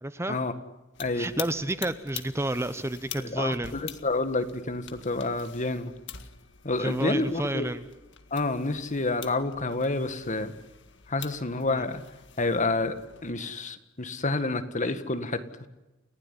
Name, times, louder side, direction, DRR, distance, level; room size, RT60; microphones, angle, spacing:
voice 1, 0.0-0.4 1.1-3.7 6.8-7.8 11.7-11.9, right 1 dB, 15° right, 12 dB, 0.8 m, -30 dB
sound 1, 0.9-13.3, left 9 dB, 60° left, 1.9 m, -45 dB
voice 2, 3.2-5.9 6.6-7.7 8.3-10.5 11.1-12.0 12.4-13.0 13.2-15.7, left 2 dB, 35° left, 10 dB, 1.8 m, -29 dB
30.0 x 16.0 x 9.8 m, 1.0 s
head